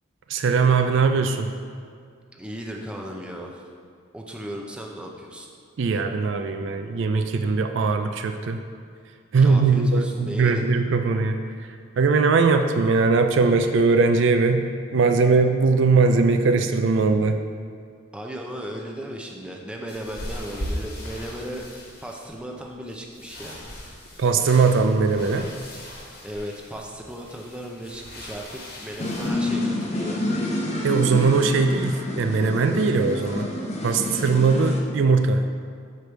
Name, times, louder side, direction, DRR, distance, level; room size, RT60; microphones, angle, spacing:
voice 1, 0.3-1.5 5.8-8.6 9.3-11.4 12.0-14.6 14.9-17.4 24.2-25.5 30.8-33.5 33.8-35.4, right 4 dB, 60° right, 7 dB, 0.4 m, -20 dB
voice 2, 2.3-3.6 4.1-5.5 9.4-10.7 18.1-21.7 22.0-23.7 26.2-30.2, equal, 5° right, 0 dB, 0.5 m, -36 dB
sound 1, 19.9-29.3, equal, 50° left, 1.4 m, -39 dB
sound 2, 29.0-34.8, left 1 dB, 30° left, 0.7 m, -28 dB
6.8 x 4.9 x 4.5 m, 2.1 s
head